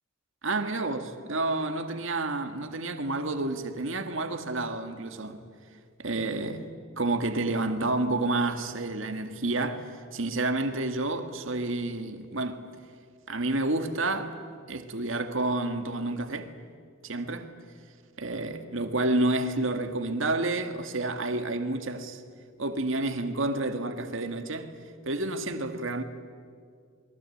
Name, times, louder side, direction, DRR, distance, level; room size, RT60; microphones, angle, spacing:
voice 1, 0.4-5.4 6.0-12.6 13.3-14.4 14.7-16.5 17.0-17.5 18.2-22.2 22.6-24.8 25.1-26.0, right 2 dB, 65° right, 1.8 m, -29 dB
28.5 x 22.0 x 8.5 m
head